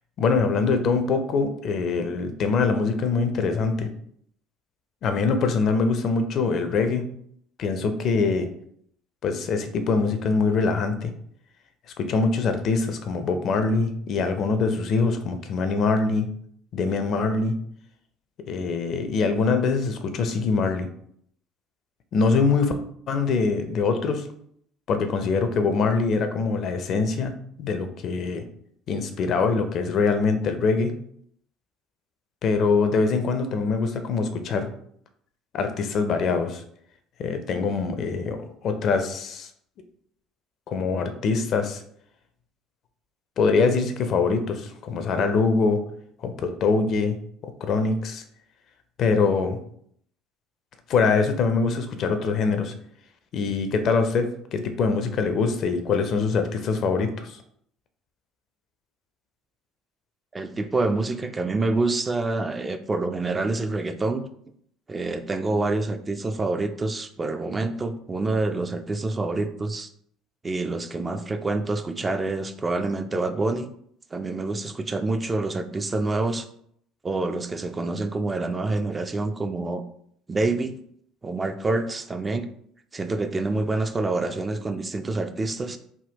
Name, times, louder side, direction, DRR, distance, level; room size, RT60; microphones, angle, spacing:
voice 1, 0.2-3.9 5.0-7.0 7.6-8.5 9.2-11.1 12.0-16.3 16.7-17.5 18.5-20.9 22.1-22.7 23.1-24.3 24.9-27.3 27.6-28.4 28.9-30.9 32.4-34.7 35.5-36.6 37.2-39.5 40.7-41.8 43.4-45.8 46.2-47.2 47.4-48.2 49.0-49.6 50.9-52.7 53.3-57.4, left 4 dB, 50° left, 8 dB, 0.4 m, -23 dB
voice 2, 60.3-64.3 64.9-69.9 70.4-73.7 74.1-76.5 77.0-79.8 80.3-80.8 81.2-82.5 82.9-85.8, right 3 dB, 25° right, 8 dB, 0.3 m, -27 dB
3.5 x 2.2 x 2.8 m, 0.67 s
hypercardioid pair, 60°, 0 cm